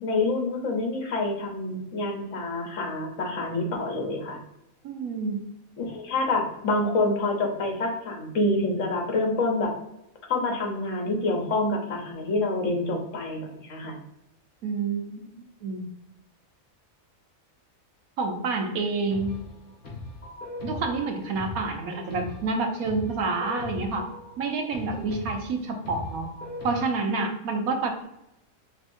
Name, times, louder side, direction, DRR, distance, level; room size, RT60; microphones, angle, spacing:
voice 1, 0.0-4.4 5.8-9.7 10.3-14.0, left 2 dB, 65° left, 1 dB, 1.2 m, -27 dB
voice 2, 4.8-5.4 14.6-15.9 18.2-19.4 20.6-24.1 24.4-26.3 26.6-28.0, right 3 dB, 80° right, 3 dB, 1.2 m, -28 dB
sound 1, 19.1-26.7, left 2 dB, 40° left, 1.5 m, -39 dB
4.9 x 3.3 x 2.5 m, 0.85 s
omnidirectional pair, 1.5 m